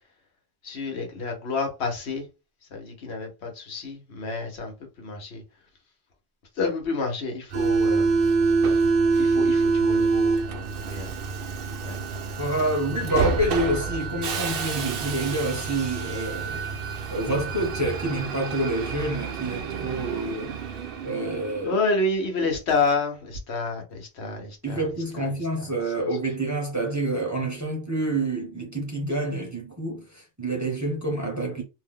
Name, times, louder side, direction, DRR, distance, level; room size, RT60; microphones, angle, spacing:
voice 1, 0.6-2.3 2.7-5.4 6.6-8.2 8.7-8.8 9.2-11.1 11.8-12.0 21.6-24.8 25.1-25.3, left 3 dB, 80° left, 1.2 m, -29 dB
Subway metro underground, 7.5-21.9, right 4 dB, 65° right, 0.8 m, -26 dB
voice 2, 12.4-16.6 17.1-20.5 21.0-21.8 24.6-31.6, right 1 dB, 20° right, 0.7 m, -28 dB
2.7 x 2.1 x 3.6 m
omnidirectional pair, 1.1 m